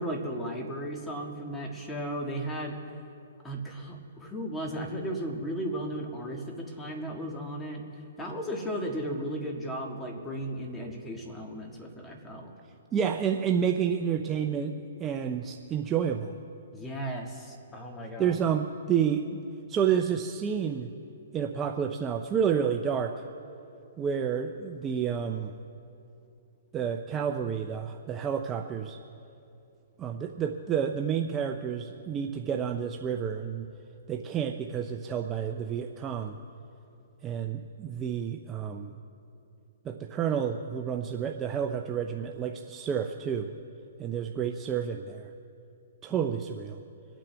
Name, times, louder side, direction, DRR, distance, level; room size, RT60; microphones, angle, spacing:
voice 1, 0.0-2.8 3.4-7.8 8.2-12.5 16.7-18.4 46.1-46.3, equal, 10° left, 0 dB, 1.8 m, -35 dB
voice 2, 12.9-16.3 18.2-19.4 19.7-20.9 21.3-23.1 24.0-25.5 26.7-29.0 30.0-33.7 34.1-36.4 37.2-38.9 39.8-43.5 44.0-45.3 46.0-46.8, right 8 dB, 20° right, 4 dB, 0.6 m, -30 dB
25.5 x 9.0 x 3.4 m, 2.6 s
hypercardioid pair, 140°, 0 cm